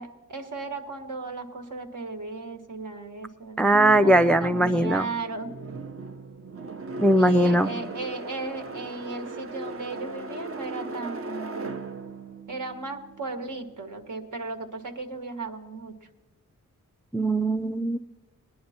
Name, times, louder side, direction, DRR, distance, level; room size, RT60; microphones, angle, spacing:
voice 1, 0.0-5.5 7.1-11.7 12.5-16.0, right 3 dB, 65° right, 6 dB, 1.5 m, -36 dB
voice 2, 3.6-5.1 7.0-7.7 17.1-18.0, right 1 dB, 5° left, 11 dB, 0.3 m, -20 dB
sound 1, 3.7-13.7, right 3 dB, 40° right, 0.9 m, -38 dB
19.5 x 10.5 x 4.3 m, 1.1 s
cardioid pair, 65°, 33 cm